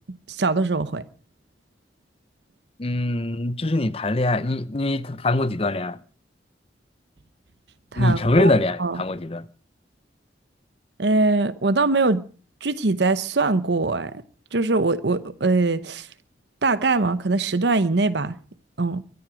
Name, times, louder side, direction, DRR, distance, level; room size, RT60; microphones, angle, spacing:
voice 1, 0.1-1.0 7.9-8.5 8.8-9.0 11.0-12.3 12.6-14.2 14.5-16.1 16.6-18.4 18.8-19.0, right 3 dB, 75° right, 0.9 m, -22 dB
voice 2, 2.8-6.0 8.0-9.4, left 2 dB, 35° left, 0.7 m, -23 dB
23.5 x 10.5 x 5.0 m
head